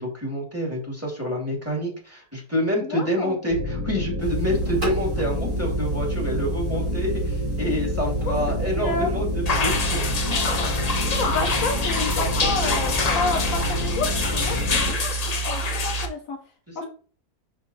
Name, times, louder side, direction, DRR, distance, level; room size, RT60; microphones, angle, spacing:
voice 1, 0.0-10.4 14.6-15.0, equal, 10° right, -1 dB, 2.3 m, -28 dB
voice 2, 2.8-3.4 8.3-8.4 8.8-9.1 11.0-16.4 16.7-16.9, left 3 dB, 65° left, 4 dB, 1.2 m, -30 dB
sound 1, 3.5-14.9, left 2 dB, 25° right, 1.1 m, -29 dB
sound 2, 4.2-16.1, right 5 dB, 50° right, 3.2 m, -30 dB
sound 3, 9.5-16.1, left 4 dB, 35° left, 0.6 m, -26 dB
6.5 x 5.9 x 2.8 m, 0.41 s
omnidirectional pair, 1.6 m